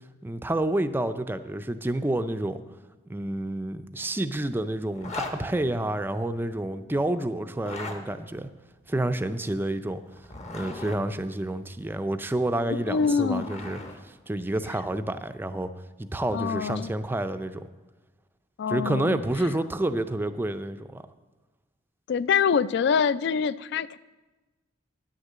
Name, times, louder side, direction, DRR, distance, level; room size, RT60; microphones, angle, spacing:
voice 1, 0.2-2.6 3.1-8.5 8.9-10.0 10.5-13.8 14.1-15.7 16.0-17.6 18.7-21.0, right 1 dB, 10° right, 10 dB, 0.4 m, -29 dB
Zipper (clothing), 4.9-5.4 7.5-8.0 10.1-11.0 12.8-13.9, left 3 dB, 35° left, 1.0 m, -37 dB
voice 2, 12.9-13.5 16.3-16.9 18.6-19.2 22.1-24.0, left 6 dB, 60° left, 18 dB, 0.3 m, -25 dB
9.5 x 6.6 x 7.3 m, 1.2 s
head